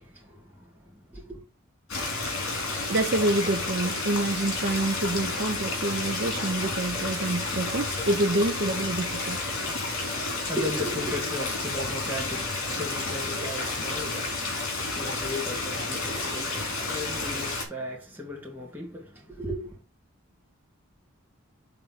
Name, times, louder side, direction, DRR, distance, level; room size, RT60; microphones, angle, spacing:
voice 1, 0.0-1.4 10.2-19.8, left 1 dB, 10° right, 2.1 m, -36 dB
Stream, 1.9-17.6, left 3 dB, 75° left, 2.4 m, -31 dB
voice 2, 2.9-9.4, right 2 dB, 50° right, 0.6 m, -27 dB
5.6 x 3.7 x 5.6 m
head